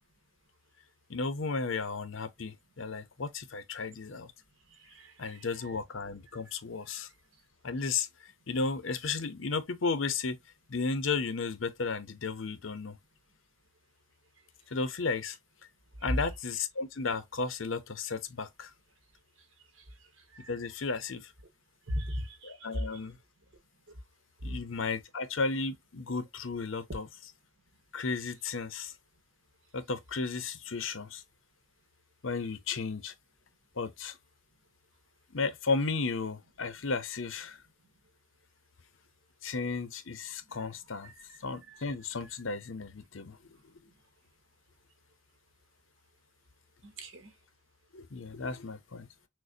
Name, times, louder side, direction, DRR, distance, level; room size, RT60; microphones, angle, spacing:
voice 1, 1.1-4.3 5.2-7.1 7.6-8.1 8.5-10.4 10.7-13.0 14.7-15.4 16.0-18.7 20.5-21.3 22.4-23.2 24.4-27.1 27.9-28.9 29.7-31.2 32.2-33.1 33.8-34.2 35.3-37.6 39.4-41.1 41.4-43.4 47.9-49.1, left 4 dB, 70° left, 0.7 m, -34 dB
voice 2, 4.8-5.8 16.0-16.1 20.3-20.5 21.9-22.9 24.4-24.6 41.0-41.4 41.7-41.8 46.8-47.3, equal, 65° right, 1.2 m, -38 dB
6.4 x 2.2 x 2.7 m
head